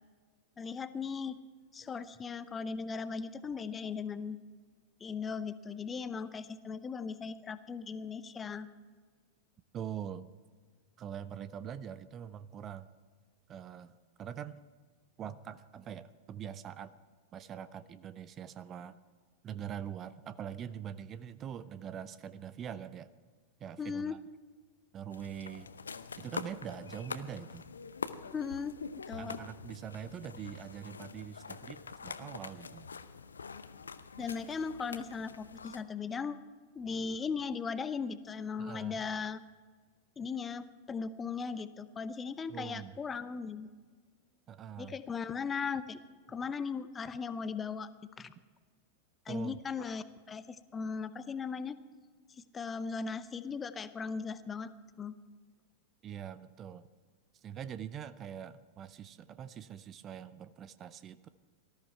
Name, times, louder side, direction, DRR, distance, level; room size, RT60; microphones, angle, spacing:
voice 1, 0.6-1.4 1.7-4.4 5.0-8.7 23.8-24.2 28.3-28.8 29.1-29.4 34.2-36.4 36.7-39.4 40.2-43.7 44.8-46.0 46.3-47.9 48.2-48.3 49.3-51.8 52.5-54.7 55.0-55.1, left 5 dB, 20° left, 13 dB, 0.7 m, -38 dB
voice 2, 9.7-10.3 11.0-12.9 13.5-13.9 14.2-14.6 15.2-17.0 17.3-19.0 19.4-23.1 23.6-24.2 24.9-25.7 26.2-27.7 29.2-32.9 38.6-39.0 42.5-43.0 44.5-45.0 46.3-46.4 48.2-48.3 49.3-49.6 56.0-56.9 57.4-61.3, right 9 dB, 30° right, 16 dB, 0.6 m, -43 dB
sound 1, 25.1-35.8, left 5 dB, 75° left, 0.6 m, -45 dB
18.5 x 14.0 x 4.5 m, 1.5 s
figure-of-eight pair, 90°, 0 cm